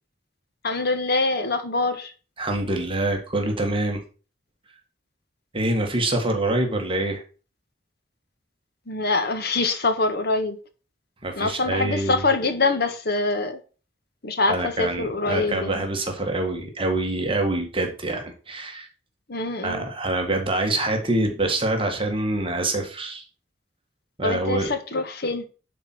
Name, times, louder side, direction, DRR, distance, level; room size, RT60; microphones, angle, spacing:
voice 1, 0.6-2.1 8.9-10.6 11.4-13.6 14.2-15.8 19.3-19.9 24.2-25.5, left 3 dB, 60° left, 1.7 m, -24 dB
voice 2, 2.4-4.0 5.5-7.2 11.2-12.2 14.5-18.9 19.6-23.2 24.2-24.7, right 2 dB, 30° right, 1.9 m, -25 dB
11.5 x 4.4 x 6.2 m
head